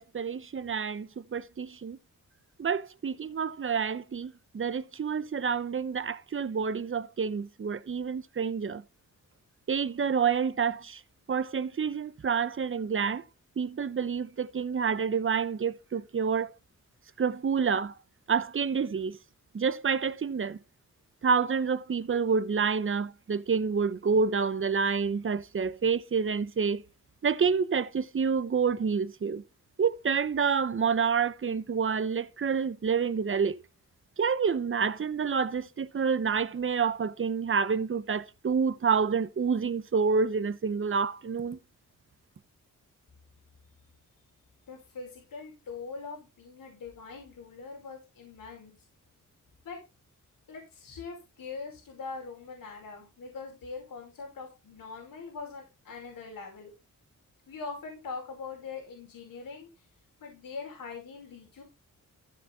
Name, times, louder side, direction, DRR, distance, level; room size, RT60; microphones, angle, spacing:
voice 1, 0.0-2.0 2.6-8.8 9.7-11.0 11.3-13.2 13.6-16.5 17.2-17.9 18.3-19.2 19.5-20.6 21.2-26.8 27.2-29.4 29.8-33.6 34.2-41.6, right 6 dB, 40° right, 0.9 m, -28 dB
voice 2, 44.7-48.8 49.6-49.8 50.5-56.7 57.5-59.7 60.2-61.6, left 4 dB, 90° left, 5.4 m, -42 dB
15.0 x 5.9 x 4.2 m
cardioid pair, 100°, 33 cm